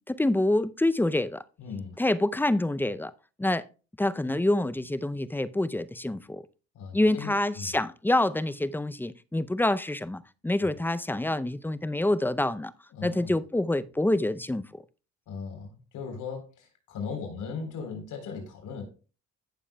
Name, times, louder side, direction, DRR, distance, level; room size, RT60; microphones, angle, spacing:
voice 1, 0.1-1.4 2.0-3.1 3.4-3.6 4.0-6.4 6.9-12.7 13.0-14.6, left 1 dB, 5° left, 0.5 m, -26 dB
voice 2, 1.6-2.0 6.7-7.7 12.9-13.3 15.3-18.8, left 5 dB, 85° left, 3.9 m, -38 dB
15.5 x 7.1 x 2.3 m
cardioid pair, 90°, 30 cm